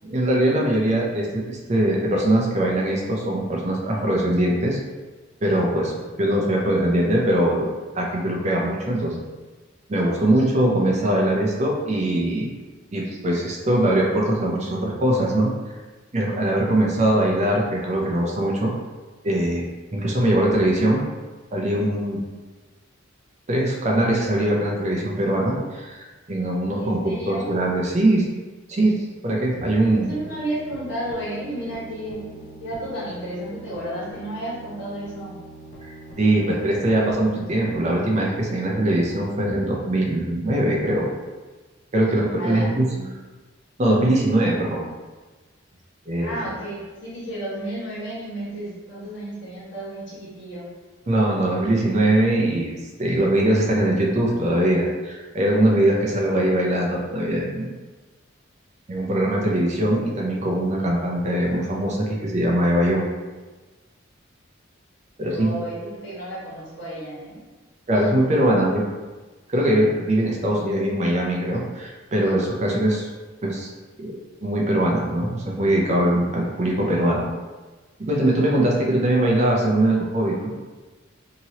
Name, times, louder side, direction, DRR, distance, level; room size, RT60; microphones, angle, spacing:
voice 1, 0.0-4.8 5.4-7.7 7.9-9.2 9.9-12.5 12.9-15.5 16.1-18.7 19.2-21.0 21.5-22.2 23.5-28.3 28.7-30.1 35.8-41.1 41.9-43.2 43.8-44.8 46.1-46.5 51.1-57.7 58.9-63.1 65.2-65.5 67.9-68.8 69.5-73.1 73.4-73.7 74.0-77.3 78.0-80.5, right 1 dB, 35° right, -2 dB, 0.5 m, -22 dB
voice 2, 26.8-27.6 30.0-35.3 42.4-42.7 46.2-50.7 65.3-67.4, right 1 dB, 65° left, -8 dB, 1.3 m, -32 dB
sound 1, 29.6-39.5, right 2 dB, 40° left, 0.5 m, -43 dB
2.9 x 2.8 x 2.8 m, 1.3 s
head